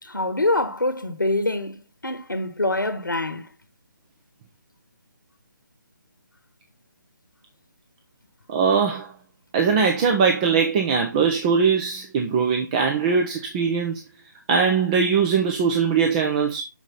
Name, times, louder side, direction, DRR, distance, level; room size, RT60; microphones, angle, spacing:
voice 1, 0.0-3.5, left 2 dB, 90° left, 1.2 m, -25 dB
voice 2, 8.5-9.1 9.5-14.0 14.5-16.6, right 6 dB, 20° right, 0.9 m, -21 dB
7.3 x 5.0 x 4.1 m
figure-of-eight pair, 150°, 10 cm